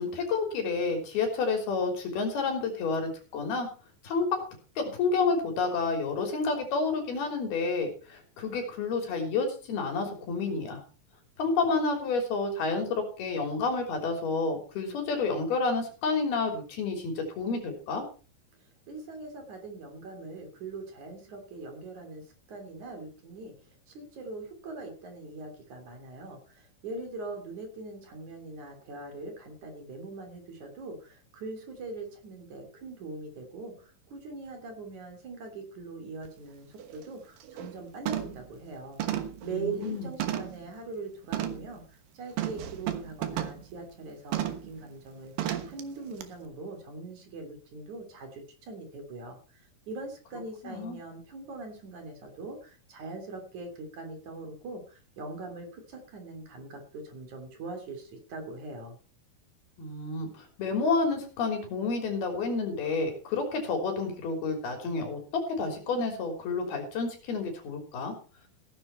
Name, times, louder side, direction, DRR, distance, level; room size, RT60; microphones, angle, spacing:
voice 1, 0.0-3.7 4.0-4.4 4.8-10.8 11.4-18.0 39.4-40.1 50.6-51.0 59.8-65.2 65.6-68.1, left 4 dB, 85° left, 4 dB, 5.4 m, -30 dB
voice 2, 18.9-22.2 22.5-23.5 23.9-39.0 39.4-41.8 42.1-49.6 49.9-59.0, right 3 dB, 55° right, 5 dB, 4.3 m, -41 dB
Zhe Coon Clang, 36.2-36.3 36.8-37.0 37.4-37.7 38.1-38.5 39.0-40.7 41.3-41.7 42.4-43.6 44.3-44.7 45.4-45.8 46.2-46.3, right 11 dB, 70° right, 3.0 m, -33 dB
16.5 x 10.5 x 4.5 m, 0.37 s
omnidirectional pair, 4.3 m